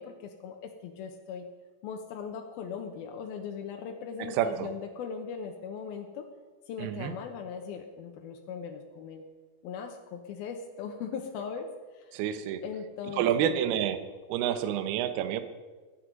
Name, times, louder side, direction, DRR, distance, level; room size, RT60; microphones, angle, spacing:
voice 1, 0.0-1.5 1.8-6.3 6.7-9.2 9.6-11.7 11.9-12.1 12.6-13.6, left 6 dB, 85° left, 3 dB, 2.1 m, -39 dB
voice 2, 4.4-4.7 6.8-7.1 12.1-12.6 13.2-14.0 14.3-15.4, right 10 dB, 85° right, 10 dB, 2.3 m, -28 dB
21.5 x 9.3 x 5.3 m, 1.3 s
omnidirectional pair, 5.8 m